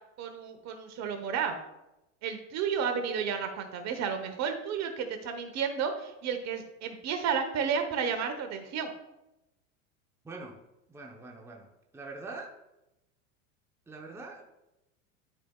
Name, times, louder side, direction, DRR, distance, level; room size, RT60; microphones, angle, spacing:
voice 1, 0.2-1.6 2.2-8.9, right 6 dB, 45° right, 7 dB, 1.1 m, -32 dB
voice 2, 10.2-10.6 10.9-12.5 13.9-14.4, right 3 dB, 5° right, 0 dB, 0.9 m, -44 dB
12.0 x 5.0 x 2.4 m, 0.93 s
hypercardioid pair, 110°, 39 cm